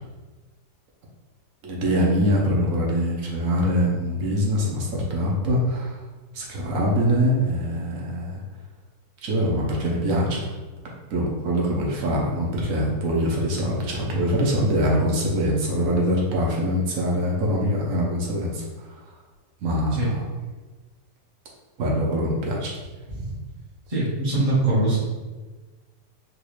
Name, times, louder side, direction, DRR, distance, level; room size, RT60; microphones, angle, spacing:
voice 1, 1.6-5.9 6.3-8.4 9.2-10.5 11.1-18.9 19.6-20.2 21.8-22.7, equal, 60° right, -2 dB, 1.0 m, -23 dB
voice 2, 23.9-25.0, right 2 dB, 25° right, -8 dB, 0.7 m, -22 dB
4.0 x 2.4 x 3.1 m, 1.3 s
omnidirectional pair, 1.9 m